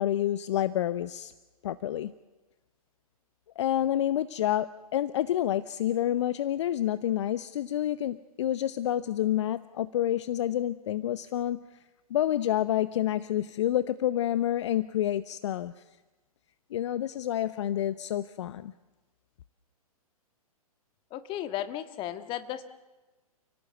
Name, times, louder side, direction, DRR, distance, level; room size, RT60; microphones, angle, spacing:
voice 1, 0.0-1.3 1.6-2.1 3.6-11.6 12.1-15.8 16.7-18.7, left 12 dB, 50° left, 14 dB, 0.8 m, -28 dB
voice 2, 21.1-22.7, left 12 dB, 25° left, 9 dB, 1.6 m, -35 dB
29.5 x 17.5 x 8.0 m, 1.2 s
figure-of-eight pair, 120°, 19 cm